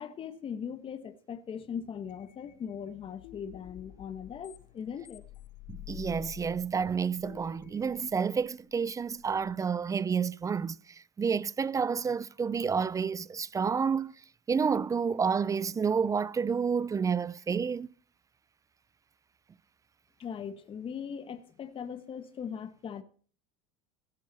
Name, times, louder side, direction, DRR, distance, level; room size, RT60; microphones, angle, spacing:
voice 1, 0.0-5.2 20.2-23.0, left 7 dB, 35° left, 1.3 m, -40 dB
sound 1, 1.7-9.5, left 13 dB, 60° left, 1.5 m, -50 dB
voice 2, 5.7-10.8 11.2-14.1 14.5-17.9, right 6 dB, 20° right, 0.5 m, -29 dB
15.5 x 12.5 x 4.2 m
supercardioid pair, 100°, 16 cm